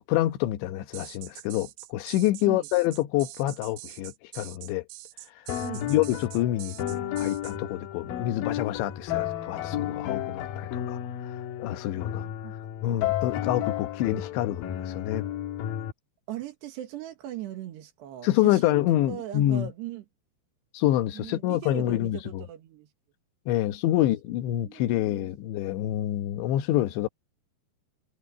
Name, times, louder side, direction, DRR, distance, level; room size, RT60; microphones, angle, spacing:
voice 1, 0.0-4.9 5.4-5.5 5.8-12.3 12.8-15.2 18.2-19.7 20.7-22.4 23.5-27.1, left 14 dB, 85° left, 3.4 m, -27 dB
sound 1, 0.9-7.6, right 17 dB, 90° right, 2.2 m, -44 dB
sound 2, 5.5-15.9, left 12 dB, 65° left, 2.6 m, -32 dB
voice 2, 5.6-5.9 12.2-12.5 16.3-18.8 19.1-20.1 21.2-22.9 23.9-24.0 24.6-25.3, right 13 dB, 75° right, 3.7 m, -39 dB
omnidirectional pair, 5.1 m